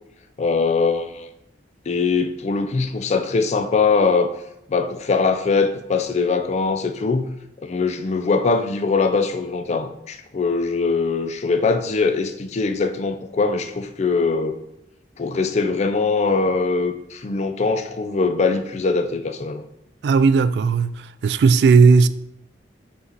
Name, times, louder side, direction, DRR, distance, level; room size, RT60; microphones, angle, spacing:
voice 1, 0.4-1.3 1.9-4.3 4.7-7.3 7.6-14.6 15.2-19.6, left 4 dB, 40° left, 0.4 m, -22 dB
voice 2, 20.0-20.9 21.2-22.1, right 4 dB, 70° right, 0.3 m, -15 dB
5.7 x 4.2 x 3.9 m
head